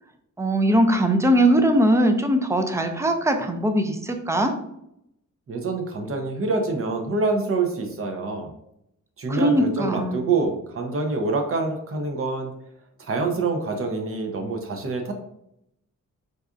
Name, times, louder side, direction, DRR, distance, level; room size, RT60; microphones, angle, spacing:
voice 1, 0.4-4.5 9.3-10.2, right 1 dB, 10° right, 6 dB, 0.4 m, -20 dB
voice 2, 5.5-8.5 9.2-12.5 13.0-15.1, right 3 dB, 45° right, 4 dB, 0.6 m, -26 dB
4.0 x 2.4 x 2.4 m, 0.77 s
cardioid pair, 90°, 31 cm